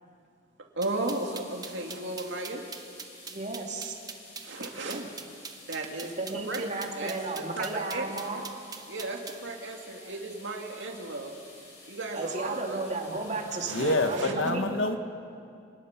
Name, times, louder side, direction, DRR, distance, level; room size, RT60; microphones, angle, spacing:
sound 1, 0.8-9.4, right 5 dB, 20° right, 1.0 m, -42 dB
voice 1, 0.8-2.6 3.5-3.8 4.4-5.1 5.7-6.6 7.0-7.1 7.6-8.4 8.9-11.4 11.9-12.9 13.7-14.3, right 2 dB, 65° right, 1 dB, 2.5 m, -35 dB
sound 2, 0.9-14.2, left 2 dB, 35° left, 6.7 m, -51 dB
voice 2, 3.3-4.0 6.2-8.4 12.1-14.7, right 2 dB, 35° right, 1 dB, 2.6 m, -34 dB
voice 3, 13.7-15.0, left 2 dB, 85° left, 7 dB, 1.6 m, -27 dB
28.0 x 19.5 x 6.0 m, 2.5 s
head